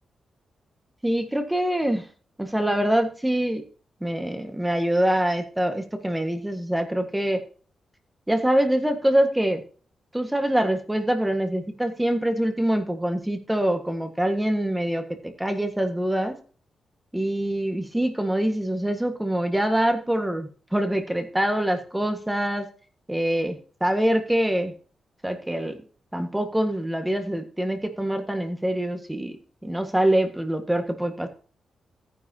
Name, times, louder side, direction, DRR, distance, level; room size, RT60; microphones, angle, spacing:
voice 1, 1.0-2.0 2.4-3.6 4.0-7.4 8.3-9.6 10.1-16.3 17.1-22.6 23.1-24.7 25.2-25.8 26.1-29.4 29.6-31.3, right 1 dB, 5° right, 6 dB, 1.6 m, -24 dB
14.0 x 10.0 x 2.8 m, 0.40 s
wide cardioid pair, 140°, 0 cm